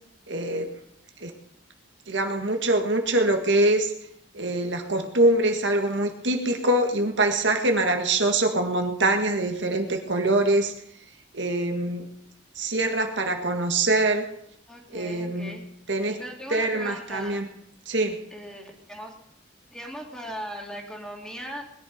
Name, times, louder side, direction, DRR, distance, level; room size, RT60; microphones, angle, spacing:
voice 1, 0.3-0.7 1.2-1.3 2.1-3.9 4.3-10.7 11.3-12.1 12.6-14.3 14.9-15.6 15.9-16.2 16.5-17.5 17.9-18.2, right 2 dB, 70° right, 5 dB, 1.8 m, -24 dB
voice 2, 14.7-15.6 16.2-17.4 18.3-19.1 19.7-21.6, equal, 5° left, 1 dB, 2.5 m, -38 dB
20.5 x 11.0 x 5.2 m, 0.74 s
head